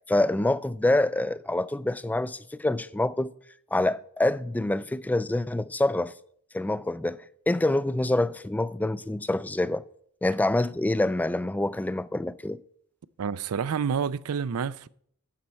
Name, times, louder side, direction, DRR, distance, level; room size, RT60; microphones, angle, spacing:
voice 1, 0.1-3.3 3.7-6.1 6.5-9.8 10.2-12.6, left 2 dB, 5° left, 0.3 m, -26 dB
voice 2, 13.2-14.9, right 6 dB, 80° right, 0.4 m, -28 dB
11.5 x 4.3 x 8.2 m
head